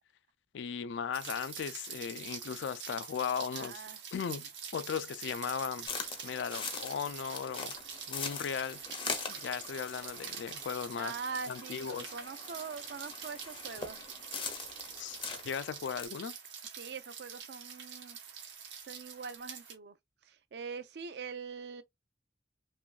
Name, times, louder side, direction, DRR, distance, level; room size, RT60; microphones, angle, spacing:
voice 1, 0.5-3.8 4.1-5.9 6.2-7.7 8.1-8.8 9.3-11.1 11.5-12.1 15.0-15.2 15.4-16.3, left 7 dB, 75° left, 0.3 m, -37 dB
Rain, 1.1-19.7, right 7 dB, 80° right, 0.9 m, -46 dB
voice 2, 3.5-4.2 11.0-14.1 16.7-18.5 18.8-20.0 20.2-21.8, right 5 dB, 65° right, 0.4 m, -43 dB
sound 1, 5.9-16.0, left 5 dB, 25° left, 0.6 m, -42 dB
2.9 x 2.5 x 2.3 m
head